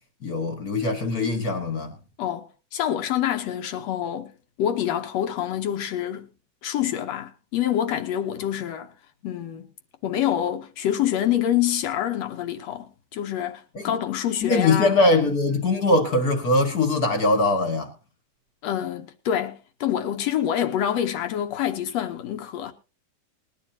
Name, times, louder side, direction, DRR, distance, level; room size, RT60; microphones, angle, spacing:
voice 1, 0.2-2.0 13.7-13.9 14.4-17.9, left 2 dB, 40° left, 1.5 m, -22 dB
voice 2, 2.2-4.3 4.6-6.3 6.6-8.9 9.2-9.7 10.0-15.0 18.6-22.7, left 10 dB, 65° left, 1.8 m, -26 dB
20.5 x 11.5 x 2.8 m
omnidirectional pair, 4.0 m